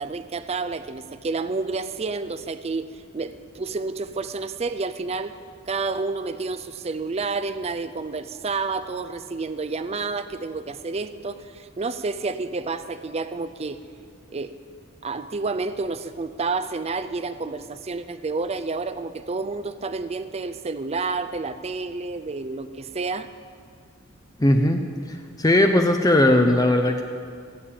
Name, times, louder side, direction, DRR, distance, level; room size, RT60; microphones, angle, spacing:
voice 1, 0.0-5.3 5.7-13.8 14.3-14.5 15.0-23.3, right 4 dB, 30° right, 11 dB, 0.4 m, -30 dB
voice 2, 24.4-27.0, left 1 dB, 20° left, 4 dB, 0.6 m, -19 dB
17.0 x 7.3 x 8.7 m, 2.2 s
head